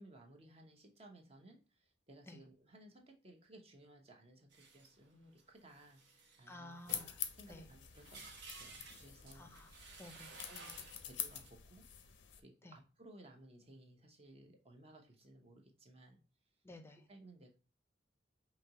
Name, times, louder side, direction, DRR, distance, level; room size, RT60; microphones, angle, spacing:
voice 1, 0.0-6.0 6.4-6.8 7.3-10.0 10.5-11.9 12.4-16.2 17.1-17.5, right 1 dB, 35° right, 2 dB, 0.9 m, -59 dB
sound 1, 4.5-11.5, right 3 dB, 85° right, 1.0 m, -56 dB
voice 2, 6.5-7.2 7.5-7.7 9.3-9.7 10.0-10.3 12.6-12.8 16.6-17.0, left 2 dB, 15° left, 7 dB, 0.5 m, -53 dB
sound 2, 6.9-12.4, left 10 dB, 85° left, 0.5 m, -46 dB
5.1 x 2.9 x 2.8 m, 0.34 s
head